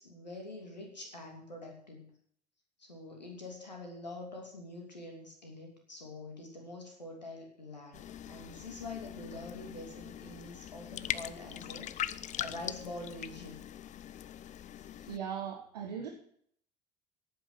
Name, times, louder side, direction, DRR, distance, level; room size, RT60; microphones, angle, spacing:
voice 1, 0.0-2.1 2.8-13.6, left 2 dB, 85° left, 2 dB, 2.9 m, -46 dB
sound 1, 7.9-15.2, left 11 dB, 35° left, 0.6 m, -41 dB
voice 2, 15.1-16.1, right 8 dB, 75° right, 3 dB, 1.6 m, -38 dB
12.5 x 9.1 x 6.8 m, 0.62 s
figure-of-eight pair, 65°, 21 cm